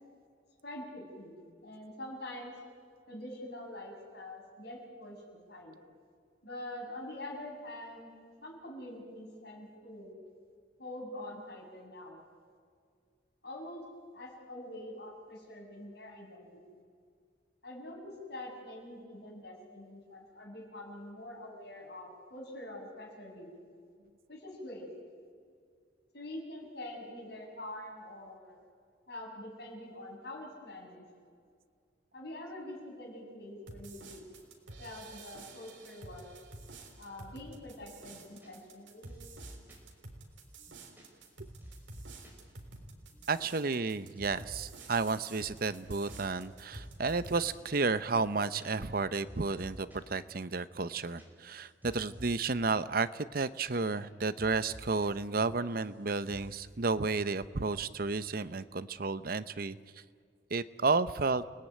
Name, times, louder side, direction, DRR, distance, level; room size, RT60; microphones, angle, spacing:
voice 1, 0.6-2.5 3.1-5.8 6.4-8.1 8.4-10.2 10.8-12.2 13.4-13.8 14.1-16.8 17.6-23.5 24.3-24.9 26.1-28.6 29.1-31.0 32.1-34.2 34.8-36.3 37.0-39.2, left 1 dB, 60° left, 0 dB, 6.7 m, -45 dB
sound 1, 33.7-47.5, right 3 dB, 80° right, 3.8 m, -50 dB
sound 2, 38.4-38.8 39.1-39.9 40.3-42.4 42.7-42.8 43.1-43.6 43.9-44.9 45.1-45.8 46.1-46.4 46.7-47.6 47.9-48.0 48.2-49.0 49.3-50.1 50.5-52.7 53.0-53.1 53.3-54.1 54.4-55.1 55.3-56.0 56.3-56.6, equal, 10° right, 4.9 m, -52 dB
voice 2, 43.3-59.8 60.5-61.4, right 4 dB, 50° right, 14 dB, 0.8 m, -32 dB
30.0 x 18.5 x 9.3 m, 2.2 s
head